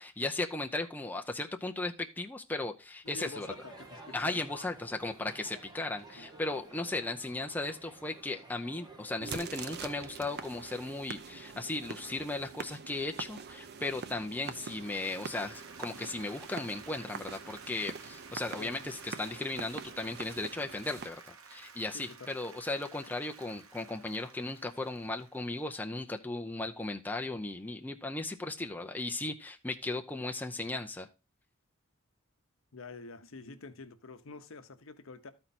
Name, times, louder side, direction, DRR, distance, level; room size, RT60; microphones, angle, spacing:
voice 1, 0.0-3.5 4.1-21.2 21.5-31.1, left 2 dB, 10° left, 0.5 m, -36 dB
voice 2, 3.0-4.4 6.2-6.3 18.6-18.7 21.9-22.4 32.7-35.3, left 3 dB, 65° left, 0.8 m, -47 dB
Crowd, 3.0-9.4, right 2 dB, 20° right, 1.7 m, -52 dB
sound 1, 9.2-21.1, right 5 dB, 50° right, 0.6 m, -44 dB
Applause, 14.6-25.9, right 5 dB, 85° right, 1.1 m, -53 dB
13.0 x 4.5 x 4.1 m
head